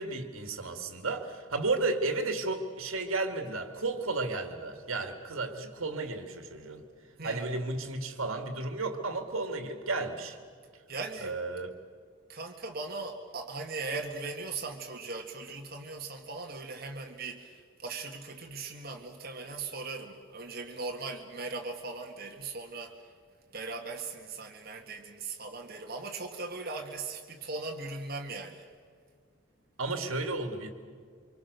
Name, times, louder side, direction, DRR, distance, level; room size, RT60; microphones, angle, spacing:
voice 1, 0.0-6.8 7.2-10.4 11.2-11.7 29.8-30.7, right 3 dB, 70° right, 6 dB, 2.3 m, -33 dB
voice 2, 7.2-7.5 10.9-11.4 12.3-23.0 23.5-28.7, right 3 dB, 45° right, 3 dB, 1.8 m, -39 dB
26.5 x 24.5 x 6.8 m, 2.1 s
head